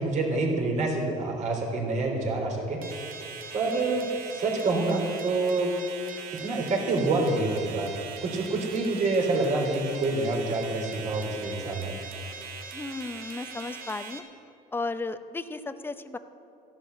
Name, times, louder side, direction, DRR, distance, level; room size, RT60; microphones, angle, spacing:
voice 1, 0.0-2.9 3.5-5.7 6.3-7.9 8.2-12.0, right 2 dB, 50° right, 0 dB, 3.5 m, -27 dB
sound 1, 2.8-14.2, right 6 dB, 70° right, 1.7 m, -41 dB
voice 2, 12.7-14.2 14.7-16.2, left 3 dB, 15° left, 10 dB, 0.7 m, -34 dB
14.5 x 11.5 x 6.5 m, 2.9 s
cardioid pair, 125°, 16 cm